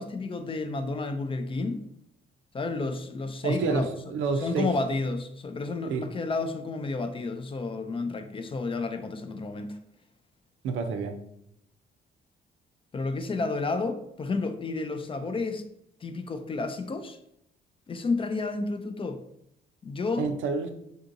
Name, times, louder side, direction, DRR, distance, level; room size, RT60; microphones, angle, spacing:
voice 1, 0.0-1.8 2.5-3.9 4.4-9.8 12.9-15.6 16.0-17.2 17.9-19.2 19.8-20.3, left 3 dB, 25° left, 0.3 m, -31 dB
voice 2, 3.4-4.7 5.9-6.0 10.6-11.1 20.2-20.7, right 4 dB, 85° right, 0.5 m, -28 dB
3.7 x 2.7 x 2.5 m
cardioid pair, 90°, 20 cm